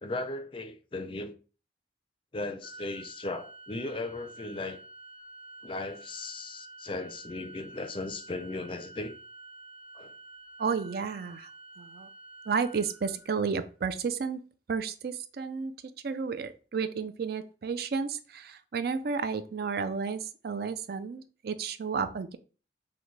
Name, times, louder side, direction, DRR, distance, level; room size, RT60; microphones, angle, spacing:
voice 1, 0.0-1.4 2.3-4.8 5.6-9.2 9.9-10.1, left 2 dB, 30° left, 0.4 m, -37 dB
Organ, 2.6-13.7, right 2 dB, 5° right, 0.7 m, -49 dB
voice 2, 10.6-11.5 11.8-12.1 12.5-14.4 14.7-15.7 16.0-22.4, right 5 dB, 60° right, 0.4 m, -32 dB
6.0 x 2.2 x 3.1 m
head